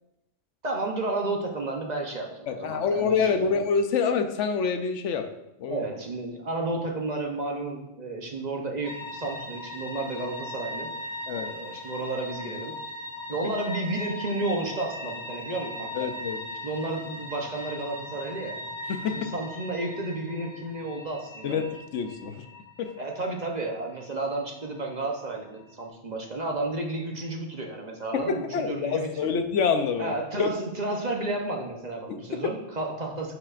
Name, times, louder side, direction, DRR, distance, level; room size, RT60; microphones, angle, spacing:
voice 1, 0.6-3.5 5.7-10.9 11.4-12.8 13.3-16.1 16.6-18.6 19.1-21.6 23.0-29.3 30.0-33.3, right 2 dB, 40° right, 1 dB, 0.9 m, -32 dB
voice 2, 2.5-5.3 5.6-5.8 11.3-11.5 16.0-16.4 18.9-19.3 21.4-22.4 22.8-22.9 28.1-30.1 30.4-30.5 32.1-32.4, left 5 dB, 80° left, 7 dB, 1.0 m, -27 dB
sound 1, 8.8-25.8, left 1 dB, 40° left, 0.9 m, -40 dB
11.0 x 5.0 x 2.5 m, 0.88 s
omnidirectional pair, 1.2 m